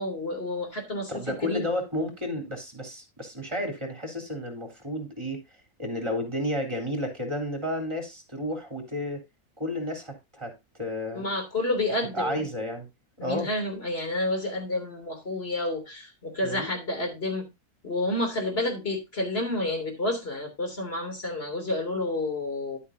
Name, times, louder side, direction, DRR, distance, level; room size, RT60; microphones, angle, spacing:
voice 1, 0.0-1.7 11.1-12.5 13.2-17.4 17.8-22.8, left 2 dB, 40° left, 3.6 m, -30 dB
voice 2, 1.1-5.4 5.8-9.2 9.6-11.2 12.1-12.9 13.2-13.5 16.4-16.7, left 1 dB, 15° right, 3.7 m, -32 dB
11.0 x 8.5 x 2.7 m
omnidirectional pair, 1.7 m